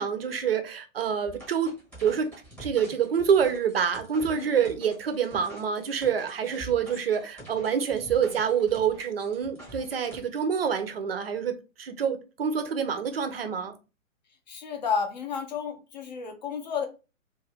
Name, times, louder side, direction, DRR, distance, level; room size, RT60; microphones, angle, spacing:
voice 1, 0.0-1.7 2.0-2.3 2.6-13.7, right 7 dB, 50° right, 0.5 m, -27 dB
sound 1, 1.3-10.2, right 2 dB, ahead, 0.9 m, -46 dB
voice 2, 14.5-16.9, left 6 dB, 35° left, 0.5 m, -31 dB
2.4 x 2.2 x 3.3 m
figure-of-eight pair, 135°, 41 cm